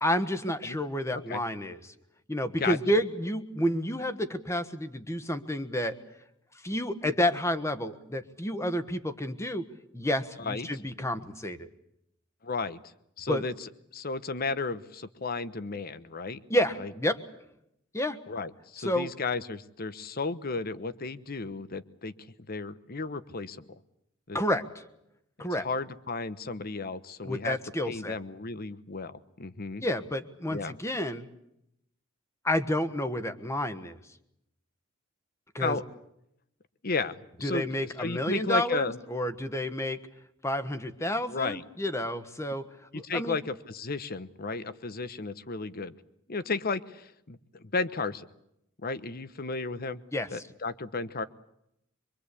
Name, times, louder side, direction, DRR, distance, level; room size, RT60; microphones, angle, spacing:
voice 1, 0.0-1.9 2.3-5.9 6.6-9.6 9.9-11.7 13.3-13.4 16.5-17.2 17.9-18.2 18.8-19.1 24.3-24.6 25.4-25.7 27.2-28.2 29.8-31.3 32.4-34.0 35.5-35.8 37.4-40.0 40.4-42.7 42.9-43.4 50.1-50.4, left 1 dB, 15° left, 10 dB, 1.4 m, -30 dB
voice 2, 12.4-12.8 13.2-16.4 16.8-16.9 18.3-22.1 22.5-23.6 24.3-24.4 25.6-27.6 27.9-29.8 30.5-30.7 35.6-35.8 36.8-39.0 41.3-41.6 42.9-45.9 46.3-48.3 48.8-50.0 50.3-51.2, left 3 dB, 50° left, 14 dB, 1.1 m, -34 dB
24.5 x 23.5 x 8.4 m, 0.80 s
head